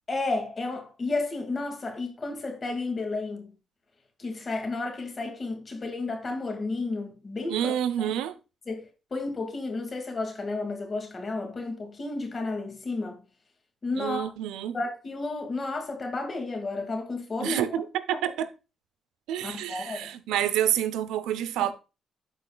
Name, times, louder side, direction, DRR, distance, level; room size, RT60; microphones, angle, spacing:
voice 1, 0.1-3.5 4.2-7.7 8.0-8.1 8.7-13.2 13.8-14.3 14.7-17.8 19.4-20.1, left 3 dB, 35° left, 2.2 m, -32 dB
voice 2, 7.5-8.4 14.0-14.8 17.4-18.5 19.3-21.7, right 11 dB, 90° right, 0.7 m, -28 dB
12.5 x 4.6 x 2.3 m
cardioid pair, 75°, 0 cm